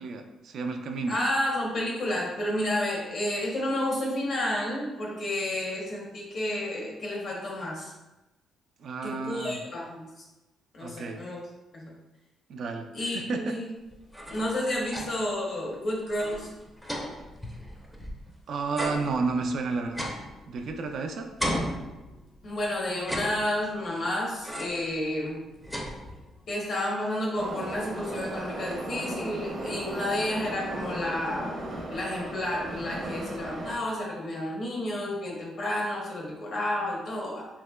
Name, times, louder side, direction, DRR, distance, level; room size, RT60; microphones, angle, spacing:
voice 1, 0.0-1.2 8.8-9.6 10.8-11.2 12.5-13.5 18.5-20.1 20.5-21.3, right 4 dB, 65° right, 5 dB, 0.3 m, -31 dB
voice 2, 1.1-7.9 9.0-10.2 10.7-11.4 11.7-11.9 12.9-13.7 14.3-16.5 22.4-25.4 26.5-31.5 31.9-37.5, left 1 dB, 55° left, -3 dB, 0.9 m, -31 dB
sound 1, 13.9-15.4 15.7-15.8 16.1-18.3 18.7-21.0 21.4-22.5 23.0-23.9 24.4-24.9 25.3-26.5, equal, 5° left, 0.5 m, -36 dB
Subway metro underground, 27.4-33.8, right 1 dB, 50° right, 0.7 m, -36 dB
3.1 x 2.8 x 2.2 m, 1.0 s
cardioid pair, 90°, 0 cm